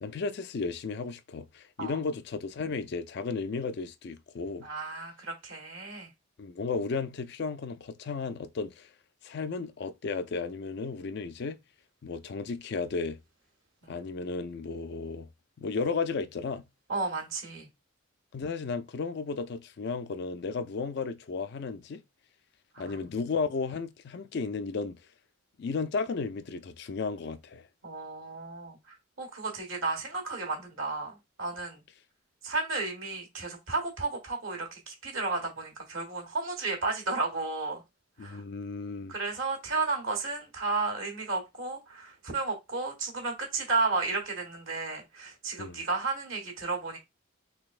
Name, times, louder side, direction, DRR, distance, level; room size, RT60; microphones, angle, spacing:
voice 1, 0.0-4.7 6.4-8.9 9.2-11.6 12.0-13.2 13.9-15.3 15.6-16.6 18.3-22.0 22.8-25.0 25.6-27.6 38.2-39.2 45.6-45.8, left 4 dB, 50° left, 0.4 m, -34 dB
voice 2, 4.6-6.1 13.8-14.1 16.9-17.7 22.7-23.0 27.8-28.8 29.2-31.8 32.4-37.8 38.2-38.4 39.1-47.0, right 3 dB, 70° right, 1.5 m, -33 dB
3.9 x 3.4 x 2.4 m
head